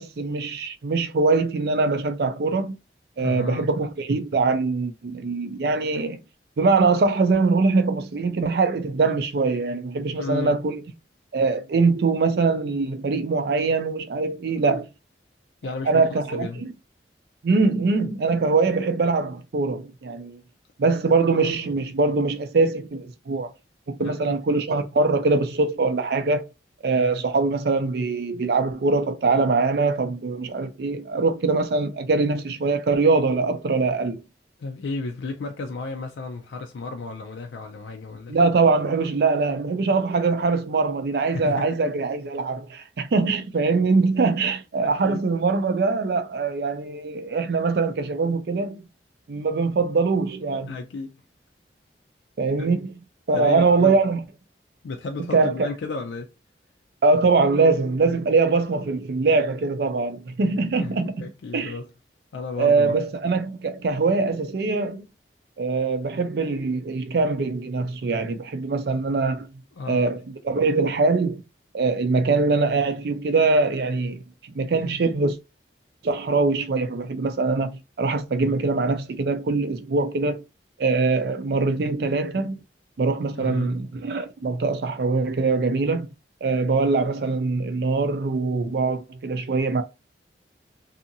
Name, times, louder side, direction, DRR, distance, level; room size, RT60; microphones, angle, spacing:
voice 1, 0.0-2.8 3.2-6.2 6.6-10.8 11.3-14.9 15.9-16.7 17.4-20.4 20.8-23.5 23.9-26.5 26.8-34.2 38.3-48.8 49.3-50.7 52.4-52.9 53.3-54.2 55.3-55.7 57.0-61.3 61.5-61.7 62.6-65.0 65.6-69.5 69.9-71.4 71.7-75.4 76.0-80.4 80.8-82.6 83.0-86.1 86.4-89.8, right 3 dB, 60° right, 0.4 m, -22 dB
voice 2, 3.2-3.7 10.2-10.5 14.6-14.8 15.6-16.6 24.0-24.4 34.6-38.4 41.3-41.9 44.8-45.2 50.7-51.2 52.6-52.7 53.3-54.0 54.8-56.3 60.8-61.9 62.3-63.0 69.8-70.1 83.3-83.7, left 3 dB, 85° left, 0.4 m, -33 dB
2.7 x 2.4 x 2.6 m
head